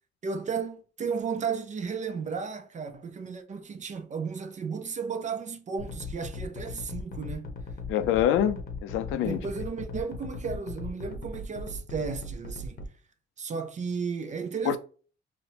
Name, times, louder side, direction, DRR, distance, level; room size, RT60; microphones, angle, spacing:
voice 1, 0.2-7.5 9.1-12.8 13.4-14.8, right 5 dB, 35° right, 0.5 m, -34 dB
sound 1, 5.8-12.9, left 3 dB, 50° left, 0.7 m, -38 dB
voice 2, 7.9-9.4 14.6-14.8, left 10 dB, 85° left, 0.4 m, -25 dB
4.1 x 2.1 x 2.8 m
cardioid pair, 90°, 20 cm